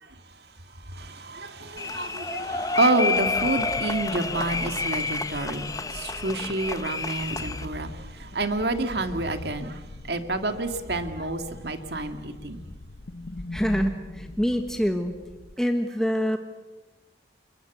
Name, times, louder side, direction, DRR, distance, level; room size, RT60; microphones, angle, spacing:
voice 1, 0.0-12.6, right 2 dB, 60° right, 7 dB, 2.1 m, -29 dB
sound 1, 1.8-7.6, left 3 dB, 20° left, 0.9 m, -29 dB
sound 2, 3.2-15.6, left 2 dB, 60° left, 0.9 m, -41 dB
voice 2, 13.5-15.1 15.6-16.4, equal, 5° left, 4 dB, 1.4 m, -25 dB
29.5 x 22.5 x 8.2 m, 1.1 s
head